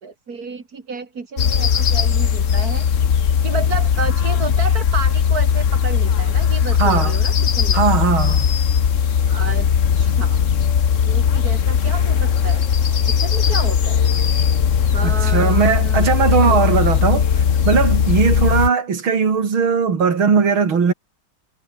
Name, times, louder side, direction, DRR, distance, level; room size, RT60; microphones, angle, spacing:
voice 1, 0.0-2.9 3.4-7.8 9.3-9.7 9.9-10.4 11.0-12.6 13.1-14.0 14.9-16.0 16.4-16.6, right 4 dB, 45° right, 3.1 m, -31 dB
sound 1, 1.4-18.7, left 7 dB, 45° left, 1.3 m, -18 dB
voice 2, 6.8-7.2 7.7-8.5 15.0-20.9, right 6 dB, 80° right, 3.6 m, -18 dB
omnidirectional pair, 2.2 m